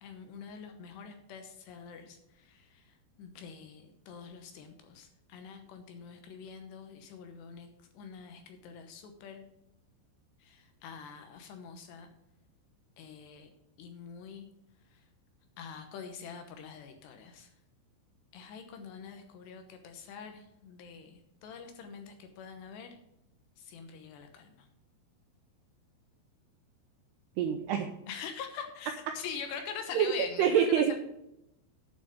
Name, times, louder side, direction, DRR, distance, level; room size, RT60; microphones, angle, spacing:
voice 1, 0.0-9.4 10.4-12.1 13.0-13.5 13.8-14.5 14.9-15.0 15.6-17.5 18.3-23.0 23.6-24.7 28.1-31.0, left 6 dB, 75° left, 6 dB, 2.8 m, -45 dB
voice 2, 27.4-27.9 29.9-30.1 30.4-31.0, right 8 dB, 80° right, 5 dB, 2.4 m, -26 dB
8.8 x 7.0 x 6.6 m, 0.81 s
omnidirectional pair, 5.7 m